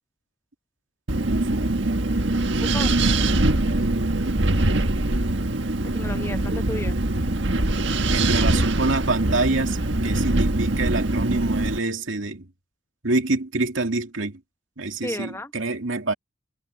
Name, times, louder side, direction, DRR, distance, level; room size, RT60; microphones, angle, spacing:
Wind, 1.1-11.8, right 2 dB, 65° right, 1.6 m, -23 dB
voice 1, 1.2-1.8 2.5-2.7 3.8-4.4 8.1-9.8 10.0-12.5 13.0-14.4 14.8-16.1, right 2 dB, 80° right, 2.4 m, -26 dB
voice 2, 2.5-3.0 5.9-7.0 8.4-8.8 15.0-15.5, left 1 dB, 15° left, 1.0 m, -33 dB
head